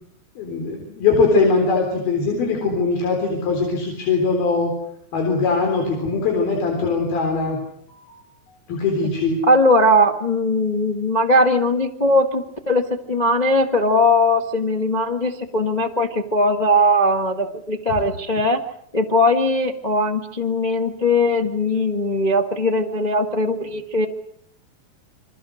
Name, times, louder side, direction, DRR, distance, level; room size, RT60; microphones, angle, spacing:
voice 1, 0.4-4.7 5.1-7.6 7.9-8.2 8.7-9.4, left 4 dB, 85° left, 2 dB, 5.7 m, -21 dB
voice 2, 9.4-18.6 18.9-24.1, left 1 dB, 55° left, 3 dB, 0.4 m, -19 dB
28.5 x 25.0 x 6.5 m, 0.70 s
omnidirectional pair, 4.2 m